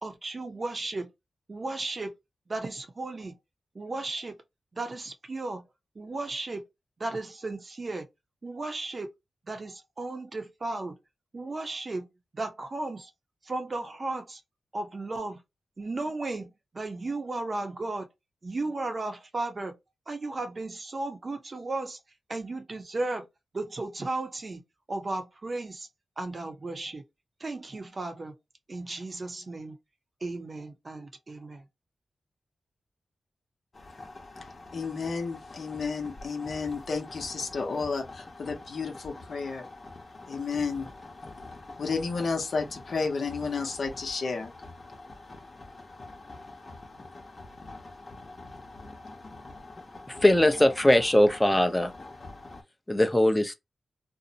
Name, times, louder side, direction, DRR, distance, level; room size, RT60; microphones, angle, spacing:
voice 1, 0.0-1.1 1.5-2.1 2.5-3.3 3.7-4.3 4.7-5.6 6.0-6.6 7.0-8.0 8.4-9.1 9.5-10.9 11.3-12.1 12.3-13.1 13.4-14.4 14.7-15.4 15.8-16.5 16.7-18.1 18.4-19.7 20.1-22.0 22.3-23.3 23.5-24.6 24.9-25.9 26.2-27.0 27.4-28.3 28.7-29.8 30.2-31.6, right 2 dB, 45° right, 0.7 m, -34 dB
sound 1, 33.7-52.6, left 2 dB, 45° left, 0.9 m, -46 dB
voice 2, 34.7-39.6 40.3-40.9 41.8-44.5, left 4 dB, 70° left, 0.7 m, -32 dB
voice 3, 50.1-51.9 52.9-53.5, left 1 dB, 15° left, 0.6 m, -21 dB
2.7 x 2.0 x 2.7 m
cardioid pair, 60°, 0 cm